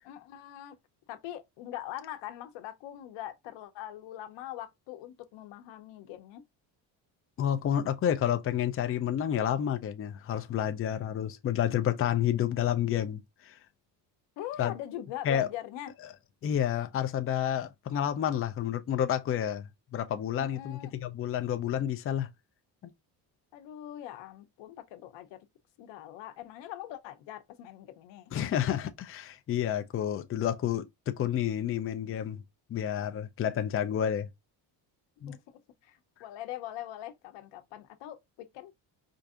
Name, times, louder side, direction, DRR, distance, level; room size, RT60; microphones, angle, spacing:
voice 1, 0.1-0.8 1.1-6.4 14.4-15.9 20.4-20.9 23.5-25.4 25.8-28.3 35.3-35.4 35.8-38.7, left 12 dB, 90° left, 0.8 m, -42 dB
voice 2, 7.4-13.6 14.6-14.7 15.2-15.5 16.4-22.3 22.8-22.9 28.3-32.4 32.7-34.3 35.2-35.3, left 10 dB, 30° left, 0.5 m, -30 dB
4.5 x 2.6 x 2.4 m
cardioid pair, 125°, 43 cm